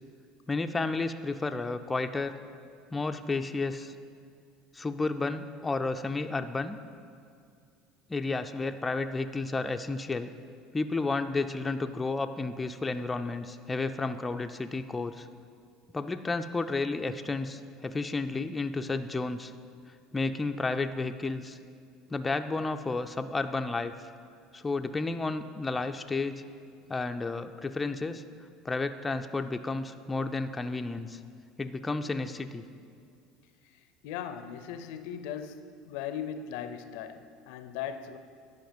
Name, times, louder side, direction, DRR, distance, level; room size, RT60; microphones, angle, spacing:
voice 1, 0.5-2.3 2.9-3.9 4.7-6.8 8.1-10.3 10.7-15.3 15.9-19.5 20.1-21.6 22.1-24.1 24.5-26.4 26.9-28.2 28.6-31.2 31.6-32.6, left 3 dB, 15° left, 7 dB, 0.4 m, -32 dB
voice 2, 34.0-38.2, left 8 dB, 75° left, 10 dB, 0.5 m, -38 dB
10.5 x 5.3 x 5.2 m, 2.3 s
supercardioid pair, 100°, 0 cm